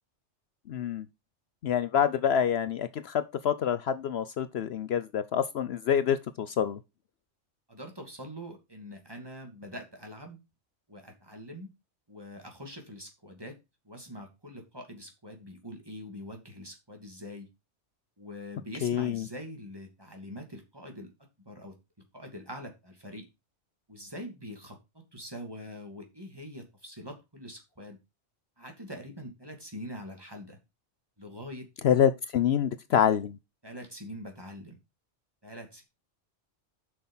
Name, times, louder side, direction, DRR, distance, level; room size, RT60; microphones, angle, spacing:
voice 1, 0.7-1.1 1.6-6.8 18.8-19.2 31.8-33.4, left 8 dB, 65° left, 0.9 m, -26 dB
voice 2, 7.7-10.4 10.9-11.7 12.1-13.6 13.8-17.5 18.2-21.1 21.5-21.8 22.1-23.3 23.9-28.0 28.6-30.6 31.2-31.7 32.9-33.2 33.6-34.8 35.4-35.8, equal, 20° right, 2.6 m, -44 dB
8.2 x 6.2 x 5.5 m
omnidirectional pair, 1.2 m